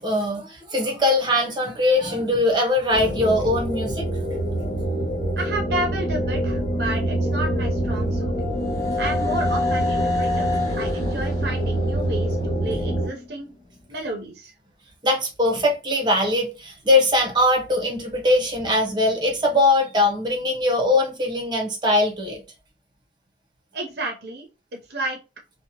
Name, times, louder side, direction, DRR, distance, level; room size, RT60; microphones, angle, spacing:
voice 1, 0.0-4.1 8.8-8.9 15.0-22.4, left 1 dB, 25° right, 0.7 m, -21 dB
sound 1, 2.9-13.1, right 1 dB, 45° left, 1.3 m, -25 dB
voice 2, 5.4-8.3 9.0-10.5 10.8-13.5 13.9-14.5 23.7-25.2, right 2 dB, 60° right, 0.5 m, -31 dB
sound 2, 7.5-13.3, left 3 dB, 15° left, 0.6 m, -30 dB
2.7 x 2.1 x 2.7 m
head